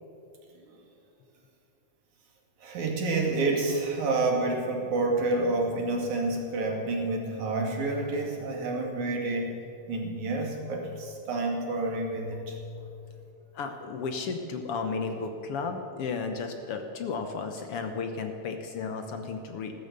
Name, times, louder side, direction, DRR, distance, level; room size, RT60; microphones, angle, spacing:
voice 1, 2.6-9.5 9.9-12.6, right 2 dB, 85° right, 0 dB, 3.7 m, -29 dB
voice 2, 13.5-19.7, left 4 dB, 60° left, 5 dB, 1.7 m, -33 dB
15.5 x 13.5 x 6.8 m, 2.7 s
omnidirectional pair, 3.3 m